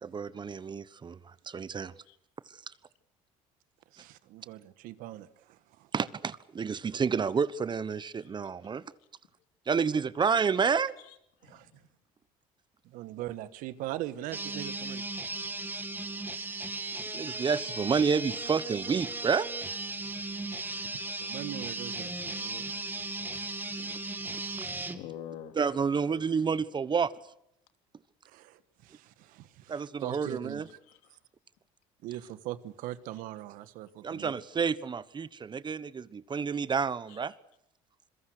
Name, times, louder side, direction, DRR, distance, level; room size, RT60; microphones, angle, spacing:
voice 1, 0.0-1.2 1.5-1.9 5.9-8.8 9.7-11.0 17.1-19.5 24.3-24.4 25.6-27.1 29.7-30.7 34.0-37.3, right 6 dB, 30° right, 17 dB, 1.2 m, -29 dB
voice 2, 3.9-5.9 11.5-11.7 12.8-15.0 20.6-22.6 28.3-30.6 32.0-34.3, right 14 dB, 70° right, 13 dB, 1.5 m, -41 dB
voice 3, 8.0-9.1 11.0-11.9 14.6-14.7 19.6-19.7 24.9-25.6 26.1-26.3 30.8-31.2 37.1-37.2, left 10 dB, 75° left, 7 dB, 2.8 m, -48 dB
sound 1, 14.3-25.0, right 2 dB, 15° right, 2.4 m, -36 dB
27.0 x 22.0 x 6.6 m, 0.77 s
supercardioid pair, 80°, 14 cm